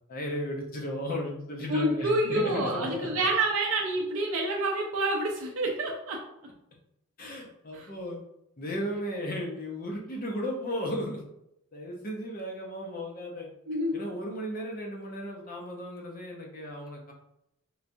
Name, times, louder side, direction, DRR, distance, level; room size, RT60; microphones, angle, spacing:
voice 1, 0.1-3.1 7.2-8.2 8.6-11.2 11.7-13.5 13.9-17.1, equal, 40° left, 0 dB, 0.7 m, -35 dB
voice 2, 1.7-6.2 7.7-7.9 13.7-14.0, right 1 dB, 65° right, -1 dB, 0.5 m, -28 dB
4.4 x 2.3 x 2.6 m, 0.81 s
head